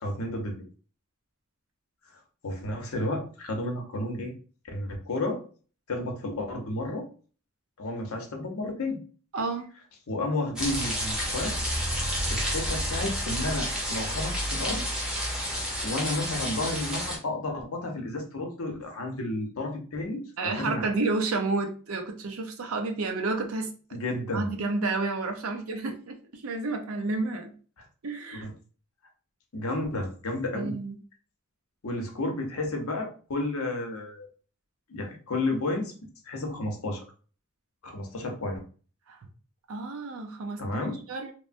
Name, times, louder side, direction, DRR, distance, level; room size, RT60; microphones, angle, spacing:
voice 1, 0.0-0.6 2.4-4.3 4.6-5.4 5.9-7.1 7.8-9.0 10.1-11.6 12.3-14.8 15.8-20.9 23.9-24.5 28.3-28.5 29.5-30.8 31.8-34.3 34.9-35.9 36.2-37.0 37.8-38.6 40.6-41.0, left 2 dB, 90° left, 3 dB, 0.7 m, -32 dB
voice 2, 9.3-9.7 20.4-23.7 24.3-27.5 28.0-28.5 30.5-30.9 39.1-39.2 39.7-40.6 41.1-41.3, right 3 dB, 85° right, 4 dB, 0.6 m, -30 dB
sound 1, 10.6-17.2, equal, 5° right, 0.7 m, -30 dB
3.1 x 2.1 x 2.5 m, 0.39 s
head